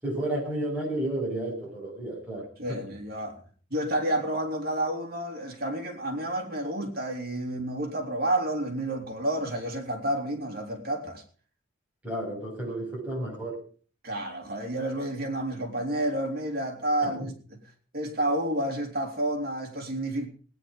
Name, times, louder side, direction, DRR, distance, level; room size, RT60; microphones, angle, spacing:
voice 1, 0.0-2.8 12.0-13.6 17.0-17.1, right 1 dB, 10° right, 7.4 m, -32 dB
voice 2, 2.6-3.4 3.7-11.2 14.0-17.6 17.9-20.3, right 1 dB, 50° right, 3.3 m, -30 dB
19.0 x 9.8 x 5.3 m
head